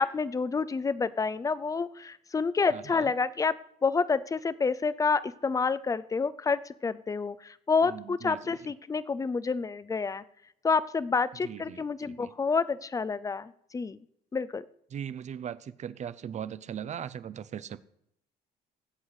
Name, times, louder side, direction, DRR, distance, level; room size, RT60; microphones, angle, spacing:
voice 1, 0.0-3.6 3.8-10.2 10.6-14.0 14.3-14.6, left 4 dB, 20° left, 17 dB, 0.6 m, -28 dB
voice 2, 2.7-3.1 7.8-8.7 11.4-12.3 14.9-17.8, right 9 dB, 45° right, 16 dB, 0.7 m, -39 dB
19.5 x 7.9 x 4.9 m, 0.74 s
cardioid pair, 110°, 17 cm